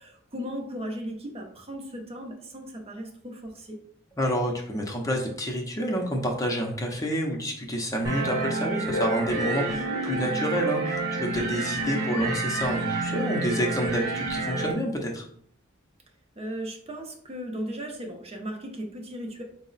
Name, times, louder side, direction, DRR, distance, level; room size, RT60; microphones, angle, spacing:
voice 1, 0.0-3.8 9.6-9.9 11.6-12.0 13.8-13.9 16.4-19.4, equal, 30° right, 2 dB, 0.6 m, -37 dB
voice 2, 4.2-15.2, equal, 15° left, 1 dB, 0.6 m, -28 dB
sound 1, 8.0-14.7, right 3 dB, 50° right, 1.0 m, -29 dB
sound 2, 8.9-13.5, left 3 dB, 75° left, 0.5 m, -37 dB
4.7 x 2.0 x 3.9 m, 0.62 s
head